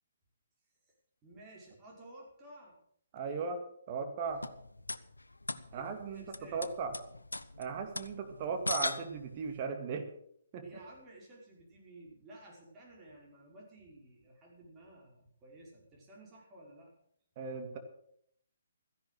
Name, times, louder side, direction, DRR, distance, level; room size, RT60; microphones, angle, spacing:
voice 1, 1.2-2.8 5.7-5.9 6.1-6.6 10.6-16.9, right 1 dB, 20° right, -2 dB, 5.3 m, -54 dB
voice 2, 3.1-3.6 3.9-4.4 5.7-6.2 6.5-6.9 7.6-10.0 10.5-10.6 17.4-17.8, right 5 dB, 35° right, 5 dB, 2.3 m, -37 dB
sound 1, 4.2-9.6, left 2 dB, 85° left, 0.8 m, -40 dB
14.5 x 11.0 x 6.5 m, 0.68 s
figure-of-eight pair, 135°, 0 cm